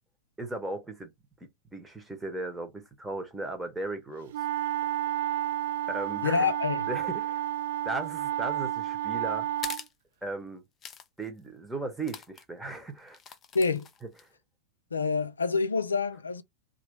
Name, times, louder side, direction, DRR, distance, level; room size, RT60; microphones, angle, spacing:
voice 1, 0.4-1.1 1.4-4.3 5.9-6.5 6.9-7.5 7.8-9.5 10.2-10.6 11.2-13.2, right 2 dB, 5° right, 1.0 m, -36 dB
sound 1, 4.3-9.8, right 12 dB, 55° right, 0.3 m, -31 dB
voice 2, 6.2-6.9 13.5-13.9 14.9-16.4, left 4 dB, 75° left, 0.4 m, -27 dB
sound 2, 9.6-9.9 10.8-11.1 11.4-11.5 12.0-12.4 13.1-14.3, left 7 dB, 25° left, 0.5 m, -42 dB
3.0 x 2.6 x 3.3 m
figure-of-eight pair, 90°, 0 cm